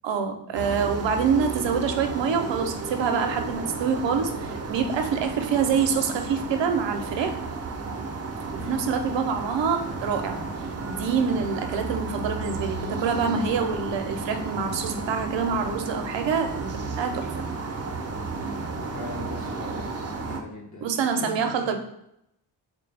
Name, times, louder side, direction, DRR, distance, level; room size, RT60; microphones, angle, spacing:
voice 1, 0.0-7.4 8.7-10.4 10.9-17.5 20.8-21.8, right 6 dB, 80° right, 6 dB, 0.6 m, -26 dB
sound 1, 0.5-20.4, right 3 dB, 35° right, 0.5 m, -33 dB
voice 2, 18.8-21.7, left 4 dB, 40° left, -2 dB, 1.0 m, -41 dB
4.1 x 2.2 x 3.3 m, 0.78 s
cardioid pair, 80°, 44 cm